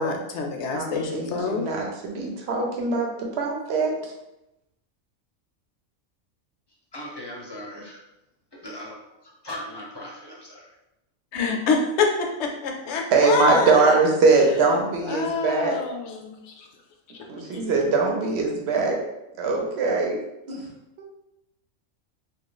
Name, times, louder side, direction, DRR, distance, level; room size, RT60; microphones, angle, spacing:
voice 1, 0.0-1.6 11.3-14.0 15.0-16.7 17.1-17.3, left 4 dB, 70° left, 2 dB, 0.8 m, -26 dB
voice 2, 0.7-4.1 13.1-15.7 17.3-19.0 19.4-20.2 20.5-20.6, right 3 dB, 60° right, 1 dB, 0.9 m, -22 dB
voice 3, 6.9-8.0 8.5-9.0 9.2-10.7, left 1 dB, 30° left, -4 dB, 0.5 m, -38 dB
2.9 x 2.4 x 3.8 m, 0.90 s
omnidirectional pair, 1.3 m